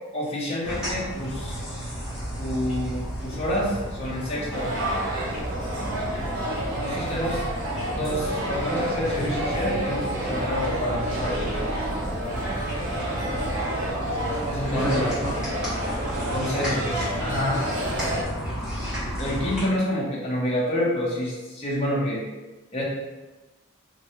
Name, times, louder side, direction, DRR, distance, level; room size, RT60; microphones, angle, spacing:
voice 1, 0.1-1.8 2.4-4.7 6.8-7.4 7.9-11.7 14.3-15.0 15.4-15.5 16.3-17.6 19.2-22.2 22.7-22.8, left 1 dB, 30° left, -6 dB, 0.7 m, -28 dB
sound 1, 0.6-19.6, equal, 5° right, 0.9 m, -32 dB
sound 2, 4.5-18.2, right 1 dB, 80° right, 0.9 m, -30 dB
3.1 x 2.3 x 2.8 m, 1.2 s
head